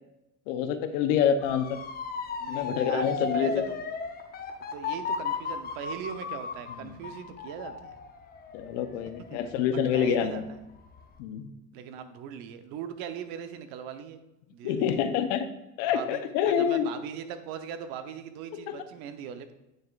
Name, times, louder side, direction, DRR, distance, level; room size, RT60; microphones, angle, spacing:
voice 1, 0.5-1.7 2.5-3.6 6.8-7.0 8.5-10.4 11.2-11.5 14.6-15.5 15.8-16.9 18.7-18.8, left 8 dB, 85° left, 8 dB, 0.8 m, -27 dB
Motor vehicle (road) / Siren, 1.4-10.3 10.7-11.2, left 5 dB, 25° left, 0.7 m, -35 dB
voice 2, 2.4-3.8 4.7-8.0 9.3-9.4 9.9-10.6 11.7-14.2 14.5-15.0 15.9-19.5, right 8 dB, 70° right, 9 dB, 0.9 m, -40 dB
9.1 x 6.5 x 2.4 m, 0.93 s
cardioid pair, 120°, 36 cm